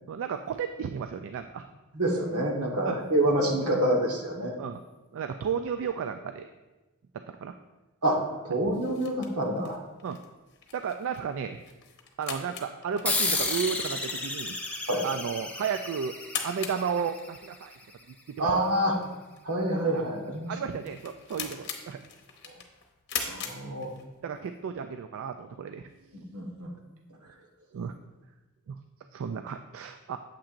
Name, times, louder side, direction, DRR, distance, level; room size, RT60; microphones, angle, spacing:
voice 1, 0.1-1.7 2.9-3.0 4.6-4.8 5.1-6.5 7.3-7.6 10.0-10.2 10.7-11.6 12.2-14.6 15.0-16.2 16.4-17.8 18.3-18.5 19.9-20.0 20.5-22.0 24.2-25.9 27.7-28.0 28.7-28.8 29.1-30.2, right 7 dB, 60° right, 8 dB, 0.3 m, -33 dB
voice 2, 1.9-4.6 8.0-9.8 14.9-15.0 18.4-19.0 19.4-20.5 22.4-22.6 23.2-23.9 26.1-26.8, right 1 dB, 80° right, 1 dB, 1.4 m, -27 dB
sound 1, 8.7-24.4, left 7 dB, 50° left, 0.9 m, -42 dB
sound 2, 13.1-18.0, left 3 dB, 5° left, 0.7 m, -32 dB
8.7 x 7.4 x 2.5 m, 1.1 s
head